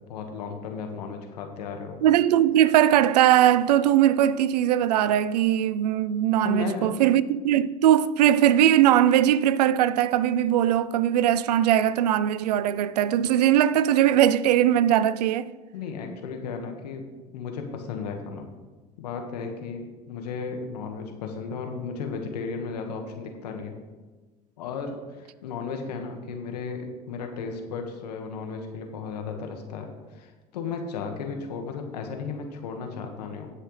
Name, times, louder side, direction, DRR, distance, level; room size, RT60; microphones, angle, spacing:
voice 1, 0.1-2.0 6.4-7.0 15.7-17.0 17.3-18.4 19.0-23.8 24.6-24.9 25.2-29.9 30.1-33.5, left 5 dB, 85° left, 1.6 m, -34 dB
voice 2, 2.0-15.5, right 11 dB, 85° right, 0.5 m, -20 dB
18.0 x 6.5 x 3.3 m
hypercardioid pair, 85°, 20 cm